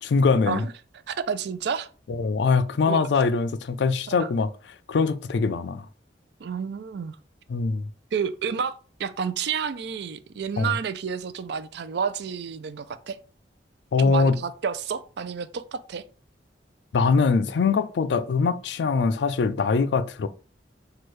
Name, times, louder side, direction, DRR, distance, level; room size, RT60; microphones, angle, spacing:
voice 1, 0.0-0.7 2.1-4.5 4.9-5.8 7.5-7.9 10.6-10.7 13.9-14.4 16.9-20.3, left 4 dB, 70° left, 0.4 m, -22 dB
voice 2, 1.1-1.9 2.9-3.0 4.1-4.3 6.4-7.2 8.1-8.7 9.0-13.2 14.0-16.0, right 6 dB, 65° right, 0.4 m, -30 dB
6.1 x 2.3 x 3.2 m
head